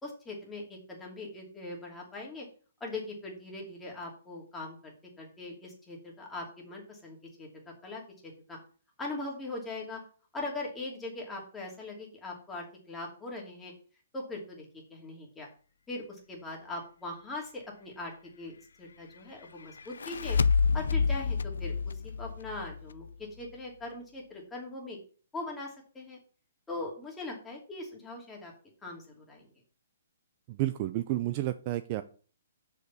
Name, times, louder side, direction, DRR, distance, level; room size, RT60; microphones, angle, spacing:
voice 1, 0.0-2.5 2.8-7.5 7.8-8.6 9.0-10.0 10.3-13.7 14.1-14.6 14.9-15.5 15.9-20.4 20.7-21.7 22.0-23.0 23.4-25.0 25.3-26.2 26.7-28.5 28.8-29.5, left 2 dB, 10° left, -1 dB, 2.6 m, -41 dB
sound 1, 19.8-23.1, left 5 dB, 85° left, 0.5 m, -28 dB
voice 2, 30.5-32.0, right 15 dB, 35° right, 11 dB, 0.5 m, -31 dB
6.6 x 5.1 x 6.9 m, 0.40 s
hypercardioid pair, 155°, 0 cm